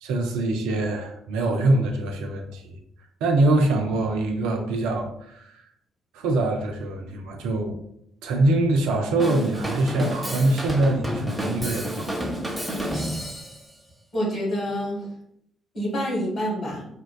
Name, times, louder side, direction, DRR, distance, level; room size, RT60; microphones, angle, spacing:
voice 1, 0.0-2.8 3.2-5.6 6.1-7.8 8.2-12.1, right 2 dB, 70° right, 3 dB, 0.4 m, -24 dB
Drum kit / Drum, 9.2-13.6, equal, 10° right, 0.8 m, -30 dB
voice 2, 14.1-15.1 15.7-16.9, equal, 45° left, -3 dB, 1.5 m, -27 dB
3.4 x 2.2 x 2.2 m, 0.73 s
figure-of-eight pair, 45°, 0 cm